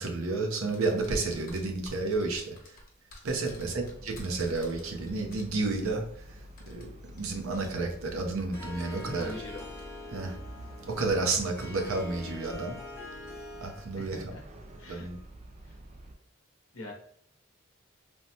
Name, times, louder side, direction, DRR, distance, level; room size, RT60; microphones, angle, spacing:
voice 1, 0.0-2.8 3.2-6.2 6.7-9.3 10.1-10.4 10.9-12.8 13.6-14.2 14.9-15.2, right 3 dB, 80° right, 2 dB, 0.6 m, -31 dB
sound 1, 0.7-5.4 6.6-7.2 7.5-7.7 8.5-9.8, left 2 dB, 45° left, 0.8 m, -50 dB
sound 2, 3.4-16.1, right 1 dB, 30° right, 0.3 m, -48 dB
Harp, 8.5-14.0, left 3 dB, 15° left, 0.6 m, -44 dB
voice 2, 9.1-9.7 14.0-14.4 14.8-15.1 15.6-15.8 16.7-16.9, left 1 dB, 75° left, -1 dB, 0.7 m, -44 dB
3.2 x 2.1 x 2.7 m, 0.67 s
head